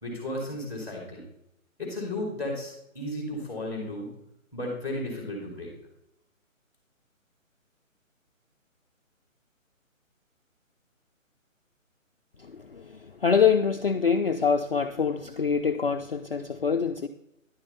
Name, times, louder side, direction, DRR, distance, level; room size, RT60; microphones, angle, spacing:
voice 1, 0.0-1.2 1.8-4.1 4.5-5.7, left 1 dB, 5° right, -1 dB, 2.5 m, -34 dB
voice 2, 12.4-17.1, left 6 dB, 45° left, 5 dB, 0.4 m, -25 dB
10.5 x 6.5 x 4.1 m, 0.81 s
hypercardioid pair, 165°, 41 cm